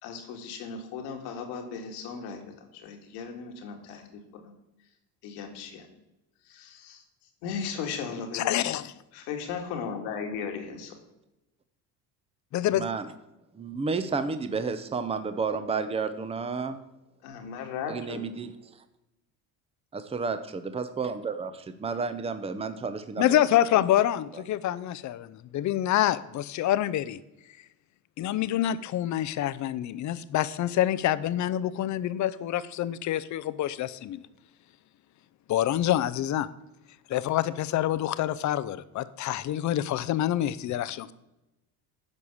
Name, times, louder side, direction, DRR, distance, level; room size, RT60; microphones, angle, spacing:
voice 1, 0.0-4.5 5.2-5.9 6.5-7.0 7.4-8.6 9.1-11.0 17.2-18.2, left 6 dB, 85° left, 3 dB, 2.0 m, -37 dB
voice 2, 8.3-8.9 12.5-12.9 23.2-27.2 28.2-34.2 35.5-36.5 37.1-41.1, left 12 dB, 45° left, 15 dB, 0.6 m, -27 dB
voice 3, 12.7-13.1 13.5-16.8 17.9-18.5 20.1-23.4 24.3-24.4, right 5 dB, 15° right, 10 dB, 0.7 m, -31 dB
10.5 x 4.8 x 7.1 m, 0.94 s
supercardioid pair, 105°, 39 cm